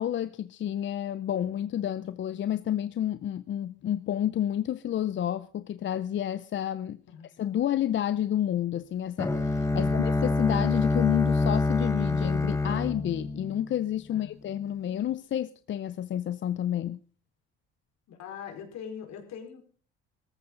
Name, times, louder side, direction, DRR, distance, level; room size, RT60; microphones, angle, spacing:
voice 1, 0.0-7.0 7.4-17.0, left 11 dB, 40° left, 0.6 m, -30 dB
Bowed string instrument, 9.2-14.1, left 3 dB, 10° left, 1.5 m, -26 dB
voice 2, 18.1-19.6, left 7 dB, 65° left, 4.6 m, -42 dB
18.0 x 14.5 x 3.9 m
cardioid pair, 95°, 29 cm